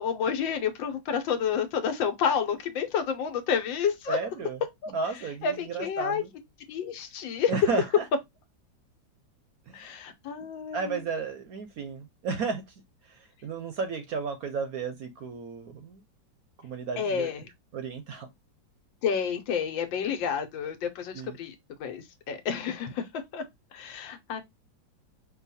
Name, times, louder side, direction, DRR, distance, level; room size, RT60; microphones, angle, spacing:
voice 1, 0.0-4.2 4.8-6.2 6.7-7.5 9.7-11.0 17.0-17.5 19.0-21.5 21.8-23.4 23.7-24.4, left 7 dB, 80° left, 1.5 m, -30 dB
voice 2, 4.1-4.6 4.9-6.3 7.5-8.0 9.7-10.0 10.7-12.6 13.1-16.0 16.6-17.3 17.7-18.3 21.1-21.3, right 5 dB, 65° right, 1.0 m, -33 dB
5.4 x 2.3 x 4.1 m
omnidirectional pair, 2.1 m